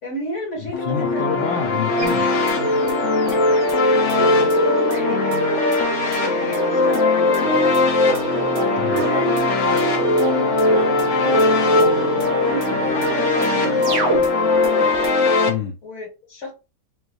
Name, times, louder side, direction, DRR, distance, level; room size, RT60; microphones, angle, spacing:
voice 1, 0.0-1.2 3.2-5.4 6.2-7.7 8.3-9.8 11.2-12.9 13.4-14.2 15.8-16.5, equal, 35° left, 1.9 m, -33 dB
voice 2, 0.6-2.3 8.8-9.1 15.5-15.7, left 7 dB, 75° left, 1.3 m, -27 dB
sound 1, 0.7-15.5, left 3 dB, 55° left, 0.8 m, -19 dB
sound 2, 2.0-15.1, right 5 dB, 65° right, 1.7 m, -30 dB
Singing, 7.4-14.3, equal, 80° right, 1.6 m, -30 dB
5.1 x 2.6 x 3.0 m
omnidirectional pair, 2.2 m